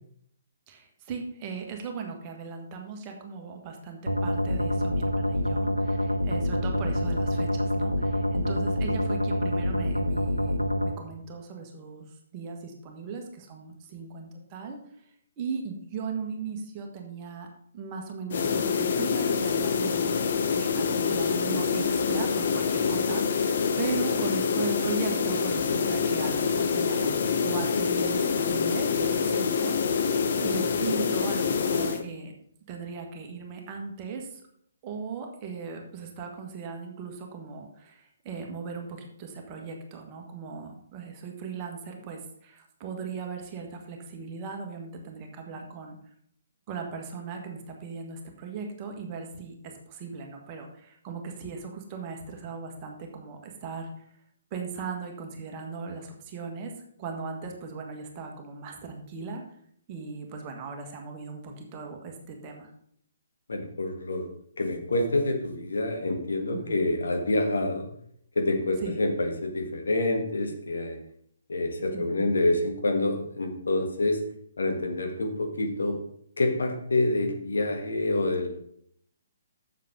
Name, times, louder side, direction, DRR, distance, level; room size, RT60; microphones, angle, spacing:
voice 1, 0.7-10.6 10.8-12.1 12.3-14.8 15.4-17.5 17.7-20.2 20.5-32.3 32.7-34.4 34.8-46.0 46.7-53.9 54.5-56.7 57.0-59.4 59.9-62.7 66.5-66.8 68.8-69.0 71.9-72.3, right 5 dB, 25° right, 2 dB, 1.5 m, -38 dB
sound 1, 4.1-10.9, equal, 90° right, 0.8 m, -26 dB
sound 2, 18.3-32.0, left 6 dB, 45° left, 0.9 m, -26 dB
voice 2, 63.5-64.3 64.6-67.9 68.4-71.0 71.5-74.2 74.6-76.0 76.4-78.5, left 2 dB, 65° left, 3 dB, 1.7 m, -27 dB
7.4 x 7.2 x 5.1 m, 0.67 s
figure-of-eight pair, 130°, 0 cm